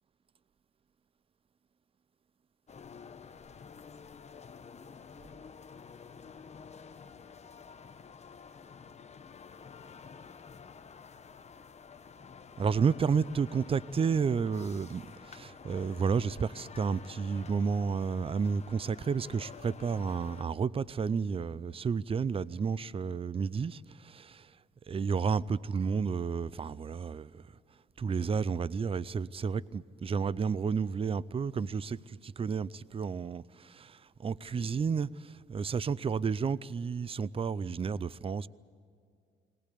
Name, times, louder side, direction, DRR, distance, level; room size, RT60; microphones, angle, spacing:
sound 1, 2.7-20.5, left 6 dB, 35° left, 0.9 m, -50 dB
voice 1, 12.6-24.6 24.9-27.5 28.0-38.5, right 5 dB, 30° right, 0.5 m, -31 dB
20.5 x 19.0 x 8.4 m
cardioid pair, 90°, 20 cm